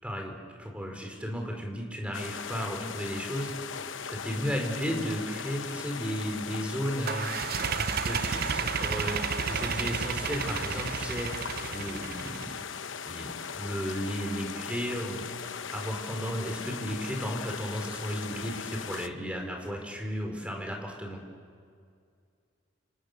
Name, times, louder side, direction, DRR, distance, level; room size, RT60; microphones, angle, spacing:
voice 1, 0.0-7.3 7.7-9.2 9.5-12.5 13.0-15.3 15.7-21.2, equal, 5° right, 1 dB, 4.3 m, -34 dB
sound 1, 2.1-19.1, left 6 dB, 85° left, 0.9 m, -39 dB
sound 2, 7.0-12.6, right 6 dB, 55° right, 0.6 m, -32 dB
29.0 x 27.0 x 6.6 m, 2.2 s
head